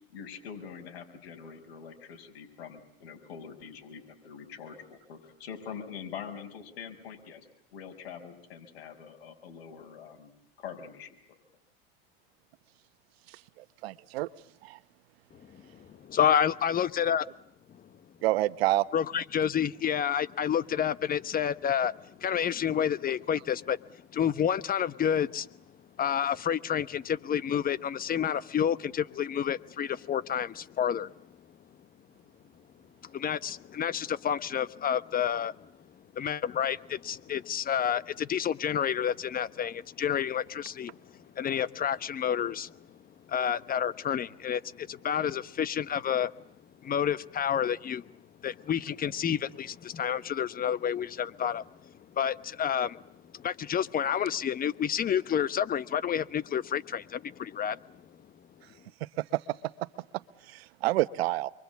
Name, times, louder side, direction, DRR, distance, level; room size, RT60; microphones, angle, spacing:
voice 1, 0.1-7.5 7.7-10.3 10.6-11.2, left 7 dB, 85° left, 5 dB, 6.1 m, -44 dB
voice 2, 13.8-14.3 14.6-14.8 18.2-18.9 59.2-59.4 60.5-61.5, right 17 dB, 85° right, 14 dB, 1.1 m, -27 dB
voice 3, 15.4-17.2 18.9-25.5 26.0-31.1 33.0-35.7 36.1-41.0 41.3-43.0 43.3-46.3 46.8-48.1 48.4-53.0 53.3-58.0, left 9 dB, 30° left, 16 dB, 1.1 m, -29 dB
28.5 x 23.5 x 8.4 m, 0.76 s
supercardioid pair, 115°, 30 cm